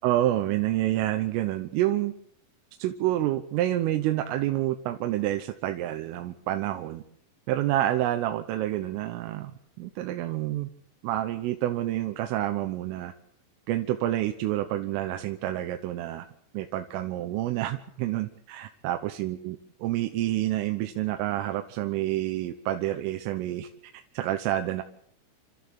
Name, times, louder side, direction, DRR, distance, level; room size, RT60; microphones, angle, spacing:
voice 1, 0.0-2.1 2.8-7.0 7.5-9.5 9.8-10.7 11.0-13.1 13.7-16.3 16.5-23.7 24.2-24.8, right 14 dB, 85° right, 7 dB, 3.6 m, -28 dB
29.5 x 13.5 x 8.6 m, 0.68 s
omnidirectional pair, 5.7 m